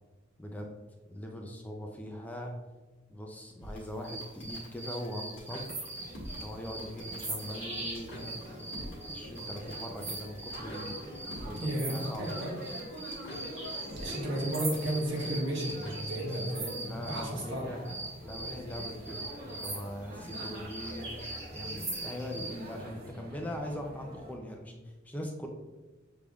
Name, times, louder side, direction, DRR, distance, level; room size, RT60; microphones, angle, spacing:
voice 1, 0.4-0.8 1.1-2.5 3.1-5.9 6.4-8.7 9.1-12.4 16.9-17.8 18.2-21.1 21.5-25.5, equal, 10° left, 2 dB, 0.4 m, -41 dB
sound 1, 3.6-15.9, equal, 65° left, 1.2 m, -48 dB
sound 2, 4.0-17.3 17.8-22.6, right 2 dB, 35° right, 1.1 m, -41 dB
sound 3, 5.9-24.4, equal, 50° right, 0.7 m, -46 dB
voice 2, 11.6-12.5 13.9-17.6, right 1 dB, 65° right, -2 dB, 1.2 m, -33 dB
6.1 x 3.4 x 2.3 m, 1.2 s
head